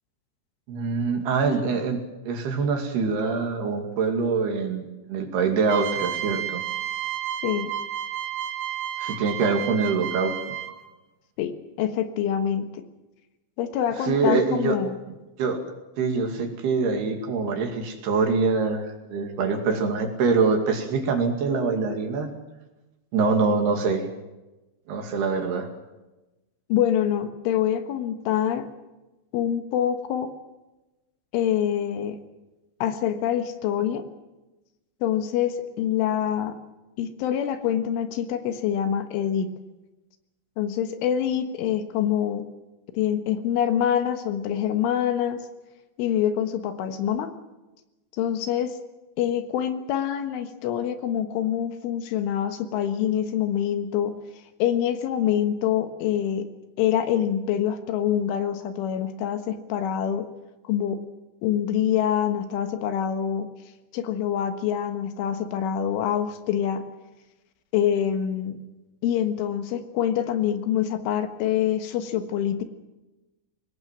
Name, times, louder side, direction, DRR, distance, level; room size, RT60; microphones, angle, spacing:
voice 1, 0.7-6.6 9.0-10.6 14.0-14.8 15.4-15.6 16.0-22.3 23.1-24.1 24.9-25.7, right 4 dB, 60° right, 4 dB, 4.0 m, -24 dB
sound 1, 5.7-10.9, right 11 dB, 85° right, 1.8 m, -31 dB
voice 2, 7.4-7.7 11.4-12.8 13.6-15.0 26.7-28.7 29.3-30.3 31.3-32.2 32.8-34.1 35.0-36.6 37.0-39.5 40.6-42.5 43.0-45.4 46.0-47.3 48.1-48.7 49.2-54.1 54.6-56.5 56.8-60.3 60.7-61.0 61.4-63.5 63.9-66.8 67.7-68.6 69.0-72.6, left 9 dB, 80° left, 8 dB, 3.8 m, -25 dB
23.0 x 18.5 x 7.5 m, 1.1 s
omnidirectional pair, 5.7 m